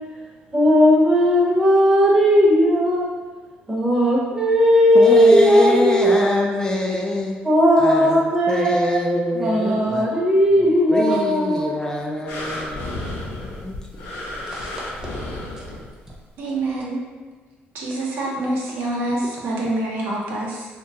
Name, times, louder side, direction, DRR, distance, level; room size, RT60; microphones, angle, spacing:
voice 1, 0.5-3.1 3.7-6.2 7.4-9.0 9.4-11.7 14.5-14.7, equal, 15° right, -4 dB, 0.7 m, -16 dB
voice 2, 4.9-7.4 7.8-10.1 10.6-12.8 13.6-14.1, left 1 dB, 20° left, 0 dB, 0.3 m, -25 dB
sound 1, 12.3-16.2 16.8-16.9, left 1 dB, 80° left, 0.6 m, -32 dB
voice 3, 16.4-17.0 17.7-20.6, right 2 dB, 80° right, -4 dB, 0.8 m, -26 dB
2.7 x 2.2 x 2.8 m, 1.4 s
cardioid pair, 100°, 4 cm